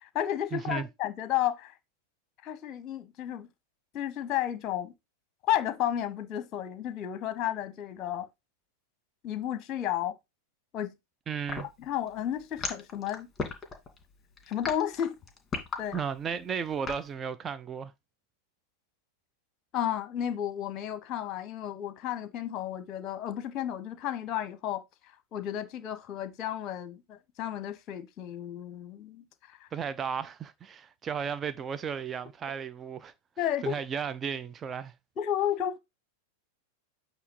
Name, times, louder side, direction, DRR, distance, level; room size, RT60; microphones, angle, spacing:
voice 1, 0.0-1.7 2.4-3.5 3.9-4.9 5.4-8.3 9.2-10.2 10.7-10.9 11.8-13.3 14.5-15.1 15.8-16.0 19.7-24.8 25.3-29.2 29.6-29.7 33.4-33.8 35.2-35.8, left 11 dB, 35° left, 1.0 m, -32 dB
voice 2, 0.5-0.9 11.3-11.7 15.9-17.9 29.7-33.1 33.6-34.9, right 7 dB, 20° right, 0.6 m, -34 dB
sound 1, 11.5-17.1, left 5 dB, 20° left, 2.2 m, -36 dB
8.3 x 2.9 x 5.5 m
figure-of-eight pair, 90°, 0 cm